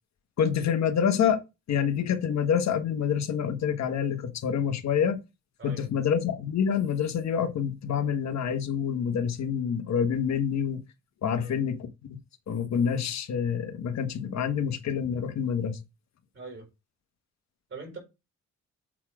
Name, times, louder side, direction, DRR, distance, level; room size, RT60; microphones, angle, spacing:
voice 1, 0.4-5.2 5.6-10.8 11.2-11.9 12.5-15.8, left 7 dB, 60° left, 1.5 m, -27 dB
voice 2, 16.3-16.7 17.7-18.0, right 3 dB, 45° right, 5.4 m, -42 dB
7.4 x 4.3 x 4.9 m
cardioid pair, 90°, 30 cm